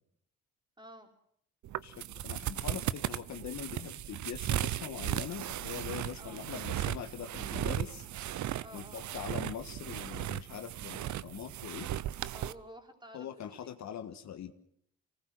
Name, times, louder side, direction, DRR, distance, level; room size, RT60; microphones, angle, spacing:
voice 1, 0.8-1.1 6.2-6.4 8.6-9.2 12.3-13.7, right 1 dB, 15° right, 5 dB, 4.4 m, -52 dB
sound 1, 1.6-12.5, right 12 dB, 70° right, 0.9 m, -36 dB
voice 2, 1.8-8.1 8.7-11.9 13.1-14.5, left 9 dB, 65° left, 8 dB, 1.7 m, -42 dB
25.0 x 19.0 x 7.8 m, 0.68 s
cardioid pair, 90°, 30 cm